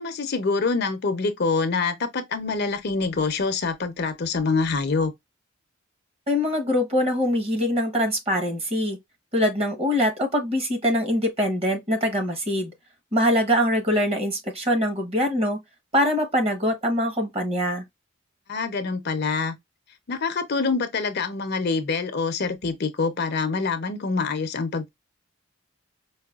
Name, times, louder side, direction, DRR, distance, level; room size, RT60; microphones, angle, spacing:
voice 1, 0.0-5.1 18.5-19.6 20.1-24.9, left 4 dB, 50° left, 0.5 m, -25 dB
voice 2, 6.3-9.0 9.3-12.7 13.1-15.6 15.9-17.8, equal, 30° right, 0.9 m, -23 dB
4.7 x 2.2 x 2.3 m
head